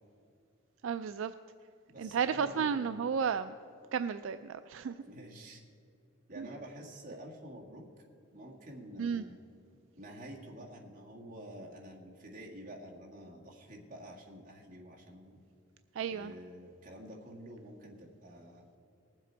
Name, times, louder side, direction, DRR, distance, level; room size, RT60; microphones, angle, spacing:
voice 1, 0.8-1.3 2.0-3.5 3.9-4.9 6.4-6.5 9.0-9.2 16.0-16.3, right 6 dB, 65° right, 10 dB, 0.3 m, -33 dB
voice 2, 1.9-2.9 5.1-5.6 6.3-7.8 8.3-9.4 10.0-15.4 16.1-18.7, right 1 dB, 35° right, -2 dB, 1.8 m, -48 dB
19.5 x 7.6 x 4.5 m, 2.7 s
head